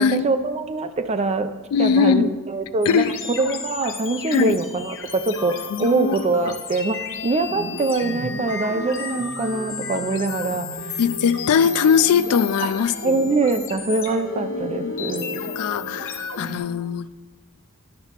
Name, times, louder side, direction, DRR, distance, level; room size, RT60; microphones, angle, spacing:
voice 1, 0.0-1.5 1.8-7.0 7.2-11.0 12.6-12.7 13.0-15.5, right 3 dB, 30° right, 9 dB, 0.4 m, -24 dB
voice 2, 1.7-2.3 2.9-3.1 4.3-4.6 5.7-6.5 11.0-13.4 14.5-14.9 15.6-17.1, left 6 dB, 85° left, 13 dB, 0.3 m, -21 dB
sound 1, 2.8-16.6, left 3 dB, 60° left, 0.9 m, -32 dB
11.0 x 5.7 x 2.9 m, 1.2 s
head